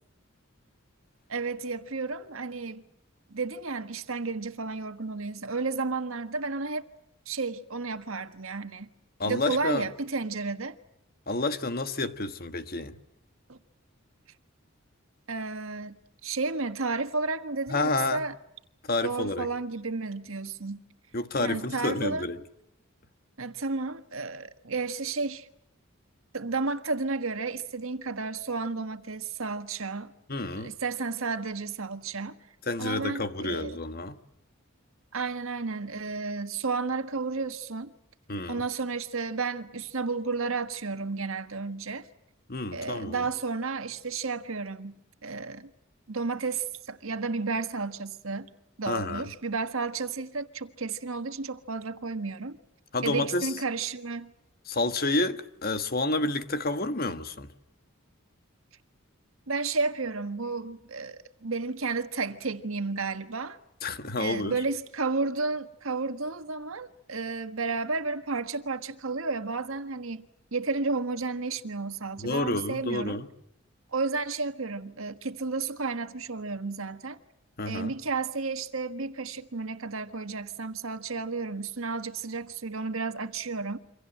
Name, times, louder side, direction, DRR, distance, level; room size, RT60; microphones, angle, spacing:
voice 1, 1.3-2.8 3.3-6.8 7.3-8.9 9.2-10.7 13.5-13.6 15.3-18.3 19.0-20.8 21.4-22.2 23.4-25.5 26.3-30.1 30.6-32.3 32.8-33.8 35.1-37.9 38.5-42.1 42.7-45.7 46.1-48.5 48.8-52.6 53.0-54.3 59.5-63.6 64.2-73.2 73.9-77.2 77.7-83.8, right 4 dB, 85° right, 1.5 m, -32 dB
voice 2, 9.2-9.9 11.3-13.0 17.7-18.2 18.8-19.5 21.1-22.4 30.3-30.7 32.7-34.2 38.3-38.6 42.5-43.3 48.9-49.3 52.9-53.5 54.7-57.5 63.8-64.6 72.2-73.3 77.6-77.9, left 2 dB, 45° left, 1.5 m, -29 dB
28.0 x 25.0 x 7.7 m
head